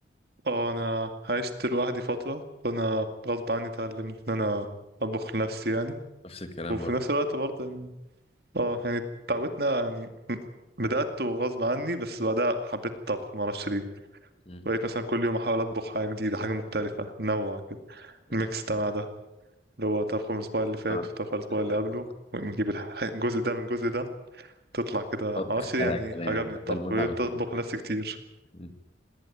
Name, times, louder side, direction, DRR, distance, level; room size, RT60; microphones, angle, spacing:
voice 1, 0.4-4.7 5.0-6.0 6.7-7.9 8.5-9.0 9.3-10.4 10.8-13.8 14.6-17.6 17.9-19.1 19.8-21.0 21.3-22.1 22.3-24.1 24.3-28.2, right 1 dB, 55° right, 8 dB, 2.3 m, -29 dB
voice 2, 6.2-6.9 14.5-14.7 20.9-21.1 25.4-27.2 28.5-28.7, left 1 dB, 30° left, 9 dB, 1.9 m, -34 dB
19.5 x 18.5 x 9.2 m, 0.95 s
head